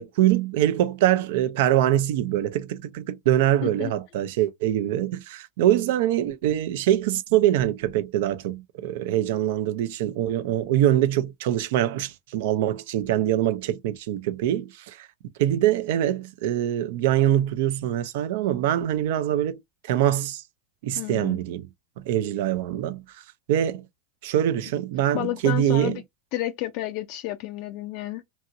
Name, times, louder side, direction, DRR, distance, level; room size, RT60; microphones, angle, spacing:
voice 1, 0.0-15.1 15.4-19.6 19.8-20.4 20.8-21.6 22.0-23.0 23.5-23.8 24.2-26.0, right 12 dB, 65° right, 0.4 m, -24 dB
voice 2, 21.0-21.4 25.1-26.0 26.3-28.2, left 15 dB, 55° left, 0.4 m, -31 dB
2.9 x 2.7 x 2.4 m
hypercardioid pair, 95°, 0 cm